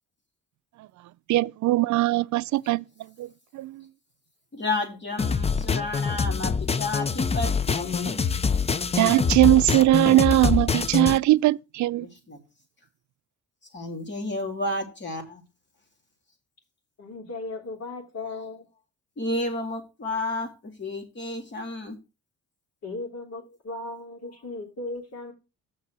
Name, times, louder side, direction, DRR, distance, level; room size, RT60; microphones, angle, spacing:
voice 1, 1.3-2.8 3.2-3.9 8.9-12.1, right 17 dB, 70° right, 0.5 m, -20 dB
voice 2, 4.5-8.2 12.0-12.4 13.7-15.4 19.2-22.0, left 2 dB, 35° left, 2.8 m, -31 dB
sound 1, 5.2-11.2, left 5 dB, 20° left, 0.5 m, -25 dB
voice 3, 17.0-18.7 22.8-25.3, left 2 dB, 55° left, 3.4 m, -36 dB
7.1 x 4.7 x 6.1 m
cardioid pair, 90°, 30 cm